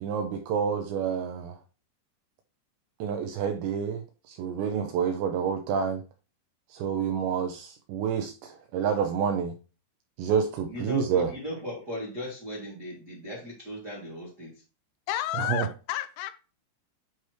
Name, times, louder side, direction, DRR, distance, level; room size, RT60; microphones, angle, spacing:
voice 1, 0.0-1.6 3.0-6.0 6.7-9.5 10.2-11.3 15.4-15.7, right 7 dB, 85° right, 2.6 m, -28 dB
voice 2, 10.7-14.5, equal, 55° right, 1.0 m, -37 dB
voice 3, 15.1-16.3, left 14 dB, 85° left, 3.1 m, -31 dB
9.4 x 3.1 x 4.7 m
omnidirectional pair, 5.7 m